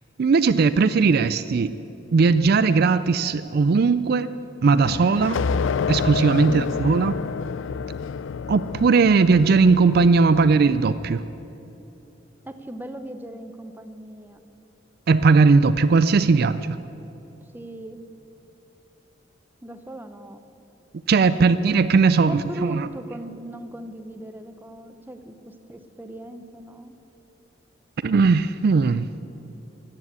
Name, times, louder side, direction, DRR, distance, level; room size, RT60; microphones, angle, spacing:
voice 1, 0.2-1.7 2.1-4.3 4.6-5.4 5.9-7.1 8.5-11.2 15.1-16.8 21.1-22.9 28.0-29.1, right 4 dB, 55° right, 13 dB, 0.4 m, -18 dB
sound 1, 4.9-11.2, left 5 dB, 85° left, 0.4 m, -29 dB
voice 2, 6.5-6.8 12.4-14.4 17.5-18.0 19.6-20.4 22.3-26.9, right 1 dB, 10° right, 8 dB, 0.8 m, -38 dB
15.5 x 9.8 x 8.2 m, 3.0 s
head